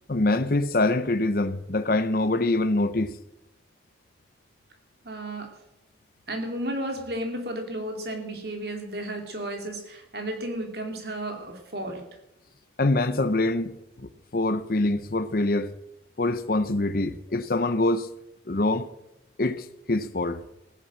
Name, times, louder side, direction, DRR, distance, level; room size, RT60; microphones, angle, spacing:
voice 1, 0.1-3.1 12.8-15.7 16.2-18.1 18.5-18.9 19.4-20.4, left 2 dB, 50° left, 0.7 m, -25 dB
voice 2, 5.0-5.5 6.3-12.0, right 1 dB, 55° right, 2.7 m, -33 dB
16.5 x 10.0 x 7.5 m
head